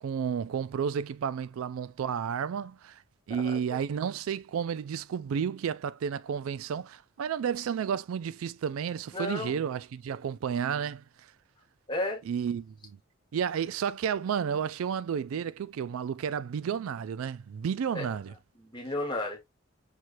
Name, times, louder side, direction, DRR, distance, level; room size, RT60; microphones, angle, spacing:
voice 1, 0.0-3.0 3.3-11.0 12.3-13.0 13.3-18.3, right 7 dB, 85° right, 0.3 m, -32 dB
voice 2, 3.4-3.8 9.1-9.6 11.9-12.2 17.9-18.1 18.6-19.4, left 2 dB, 20° left, 1.3 m, -33 dB
6.0 x 3.2 x 2.5 m
head